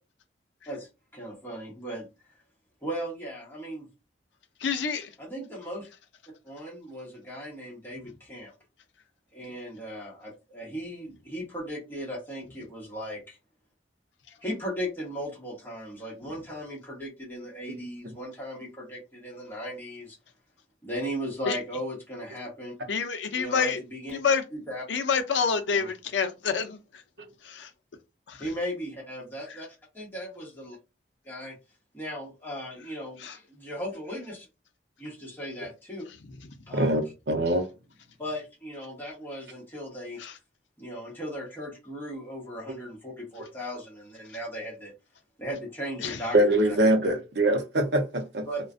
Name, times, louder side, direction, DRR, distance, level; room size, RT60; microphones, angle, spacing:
voice 1, 0.7-2.1 2.8-3.9 5.2-5.9 6.4-8.5 9.3-13.4 14.4-20.2 20.8-22.7 23.3-24.2 24.5-24.8 25.7-25.9 28.4-29.7 29.9-30.8 31.2-31.5 31.9-34.5 35.0-36.0 36.7-37.0 38.2-40.2 40.8-44.9 45.4-46.6 48.5-48.6, equal, 10° left, 1.1 m, -37 dB
voice 2, 4.6-5.1 21.5-21.6 22.9-23.8 24.1-24.4 24.9-26.8 27.4-27.7 28.3-28.4 33.2-33.4 36.4-36.5 40.2-40.3 46.0-46.2, left 5 dB, 90° left, 0.5 m, -27 dB
voice 3, 37.3-37.7 46.3-48.4, right 1 dB, 65° right, 0.6 m, -23 dB
2.4 x 2.2 x 2.5 m
head